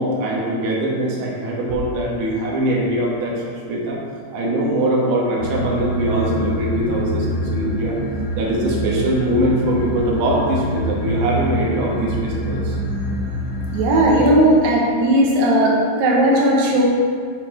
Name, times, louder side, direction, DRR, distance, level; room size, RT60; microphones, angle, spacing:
voice 1, 0.0-4.0 4.3-8.0 8.4-12.8 14.1-14.2, right 1 dB, 70° right, -3 dB, 2.7 m, -22 dB
sound 1, 5.4-14.4, equal, 75° left, 1.1 m, -25 dB
voice 2, 13.7-16.9, right 1 dB, 85° right, -3 dB, 2.0 m, -16 dB
8.0 x 4.2 x 5.1 m, 2.1 s
omnidirectional pair, 5.6 m